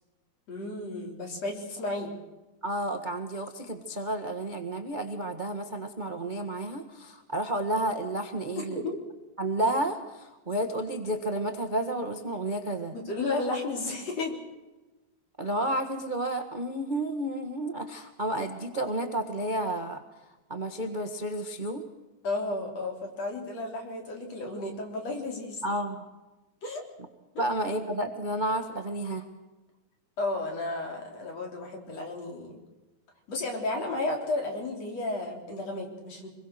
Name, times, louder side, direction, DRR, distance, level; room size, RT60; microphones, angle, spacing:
voice 1, 0.5-2.1 8.6-9.0 12.9-14.4 22.2-25.6 26.6-26.8 27.3-27.5 30.2-32.6 33.3-36.3, left 2 dB, 55° left, 2 dB, 4.8 m, -33 dB
voice 2, 2.6-8.8 9.4-13.0 15.4-20.0 20.5-21.8 25.6-26.1 27.4-29.2, right 1 dB, 25° right, 6 dB, 0.9 m, -31 dB
26.5 x 21.5 x 6.7 m, 1.1 s
omnidirectional pair, 3.5 m